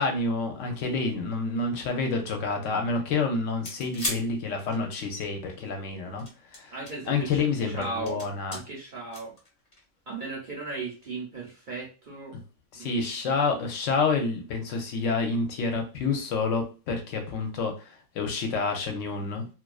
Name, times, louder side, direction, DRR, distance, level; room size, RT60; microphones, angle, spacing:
voice 1, 0.0-6.3 6.5-6.7 7.1-8.6 12.7-19.5, left 4 dB, 70° left, 4 dB, 0.9 m, -28 dB
sound 1, 3.5-5.3 6.1-7.1 7.6-8.6 9.1-10.0 11.0-11.1, left 1 dB, 35° left, 0.7 m, -36 dB
voice 2, 6.7-8.2 8.5-9.3 10.1-12.4 12.8-13.1, right 3 dB, 55° right, -3 dB, 0.5 m, -37 dB
2.4 x 2.3 x 2.3 m, 0.34 s
omnidirectional pair, 1.4 m